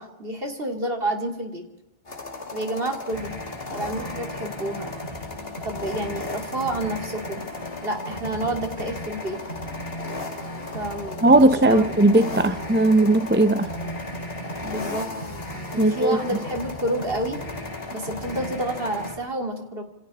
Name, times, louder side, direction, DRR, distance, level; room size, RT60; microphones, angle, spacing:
voice 1, 0.0-1.6 2.5-3.4 3.7-5.0 5.6-7.4 7.8-9.4 10.7-11.9 14.6-15.1 15.7-17.4 17.9-19.8, right 1 dB, 60° right, 4 dB, 3.0 m, -29 dB
sound 1, 2.1-19.1, left 4 dB, 65° left, 2.4 m, -37 dB
sound 2, 3.1-19.2, right 1 dB, 45° left, 6.2 m, -37 dB
voice 2, 11.2-13.7 15.8-16.2, right 2 dB, 10° right, 11 dB, 0.9 m, -18 dB
29.0 x 27.0 x 4.3 m, 0.96 s
omnidirectional pair, 1.1 m